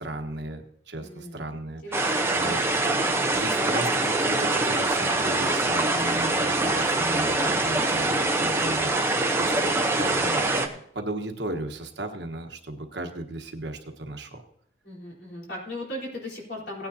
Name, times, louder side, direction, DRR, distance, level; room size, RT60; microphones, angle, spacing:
voice 1, 0.0-2.1 2.3-2.7 3.3-14.4, right 1 dB, 65° right, 5 dB, 1.3 m, -36 dB
voice 2, 1.0-1.4 1.8-2.7 14.8-16.9, left 1 dB, 60° left, -3 dB, 4.2 m, -38 dB
sound 1, 1.9-10.7, right 2 dB, 15° right, 0.8 m, -24 dB
17.5 x 9.5 x 2.8 m, 0.68 s
head